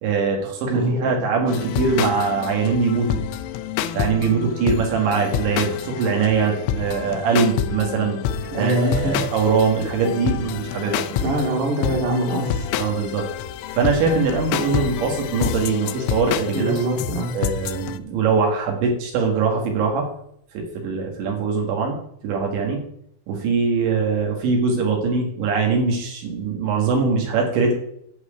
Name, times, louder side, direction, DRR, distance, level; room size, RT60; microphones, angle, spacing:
voice 1, 0.0-3.2 3.9-8.2 8.6-11.0 12.8-13.3 13.7-16.7 17.3-20.1 20.5-22.0 22.2-22.8 23.3-27.7, right 4 dB, 70° right, 1 dB, 4.0 m, -22 dB
voice 2, 0.7-1.1 8.5-9.2 11.1-12.7 16.5-17.3, right 1 dB, 50° right, -1 dB, 3.3 m, -23 dB
sound 1, 1.5-18.0, left 8 dB, 85° left, 3.2 m, -28 dB
11.5 x 4.8 x 8.1 m, 0.71 s
omnidirectional pair, 5.6 m